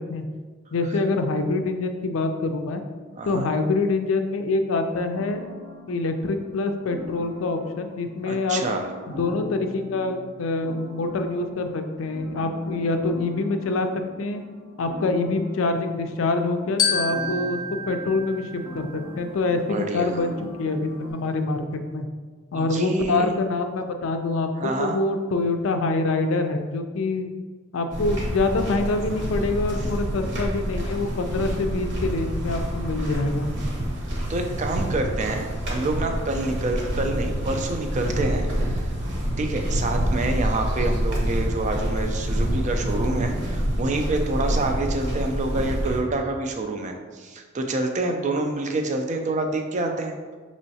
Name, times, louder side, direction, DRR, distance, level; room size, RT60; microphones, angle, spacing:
voice 1, 0.7-2.8 3.3-5.4 5.9-8.6 9.1-13.9 14.2-14.4 14.8-22.1 22.5-27.3 27.7-33.5, left 3 dB, 75° left, 7 dB, 0.4 m, -25 dB
voice 2, 3.2-3.5 8.2-8.9 19.5-20.2 22.5-23.3 24.6-25.0 34.3-38.9 39.4-50.2, right 2 dB, 35° right, 4 dB, 0.4 m, -27 dB
sound 1, 5.1-21.1, equal, 90° right, 0.9 m, -42 dB
Glockenspiel, 16.8-19.3, left 4 dB, 20° left, 0.6 m, -28 dB
sound 2, 27.9-46.0, equal, 60° right, 1.0 m, -27 dB
5.4 x 3.0 x 2.8 m, 1.4 s
head